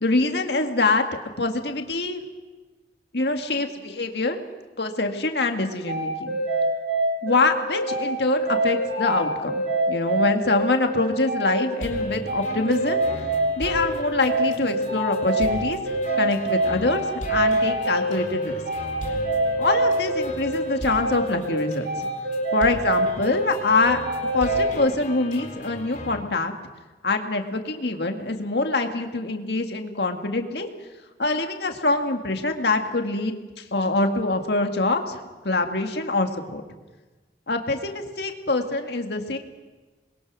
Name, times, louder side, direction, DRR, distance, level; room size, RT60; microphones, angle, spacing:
voice 1, 0.0-2.2 3.1-4.4 4.8-6.4 7.2-13.3 13.6-15.8 16.2-18.6 19.6-22.1 22.5-24.0 24.3-26.5 27.0-30.7 31.2-36.6 37.5-39.4, left 3 dB, 65° left, 5 dB, 2.0 m, -25 dB
sound 1, 5.9-24.7, right 2 dB, 75° right, 7.8 m, -25 dB
sound 2, 11.8-26.2, left 1 dB, 45° left, 4.2 m, -38 dB
28.0 x 22.0 x 6.2 m, 1.2 s
head